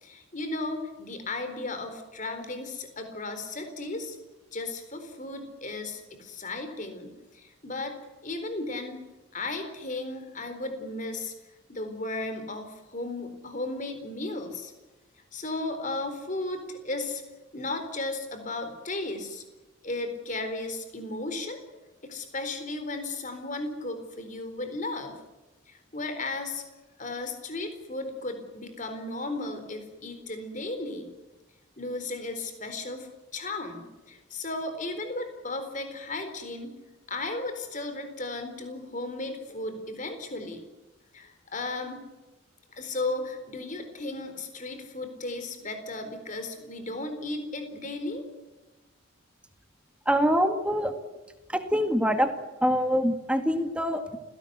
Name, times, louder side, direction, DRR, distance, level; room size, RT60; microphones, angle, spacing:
voice 1, 0.0-4.2 4.5-8.0 8.2-9.0 9.3-11.3 11.7-14.7 15.3-17.2 17.5-19.4 19.8-21.6 22.0-25.2 25.7-26.6 27.0-31.1 31.8-36.7 37.1-40.6 41.1-42.0 42.7-48.3, left 2 dB, 35° left, 8 dB, 4.1 m, -35 dB
voice 2, 50.1-51.0 51.5-52.3 52.6-54.2, equal, 5° right, 7 dB, 2.0 m, -24 dB
29.5 x 17.5 x 8.1 m, 1.1 s
head